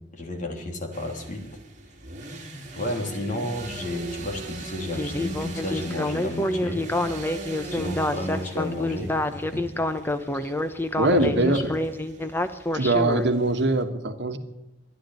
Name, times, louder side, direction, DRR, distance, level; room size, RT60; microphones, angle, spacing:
voice 1, 0.1-1.4 2.7-6.8 7.7-9.6 11.0-11.6, left 1 dB, 45° left, 2 dB, 3.2 m, -31 dB
sound 1, 0.9-13.8, right 2 dB, 45° right, 2.4 m, -41 dB
Speech synthesizer, 4.9-13.3, left 1 dB, 10° left, 0.8 m, -27 dB
voice 2, 11.0-11.7 12.7-14.4, right 2 dB, 70° right, 7 dB, 1.4 m, -22 dB
13.5 x 11.5 x 9.2 m, 0.94 s
head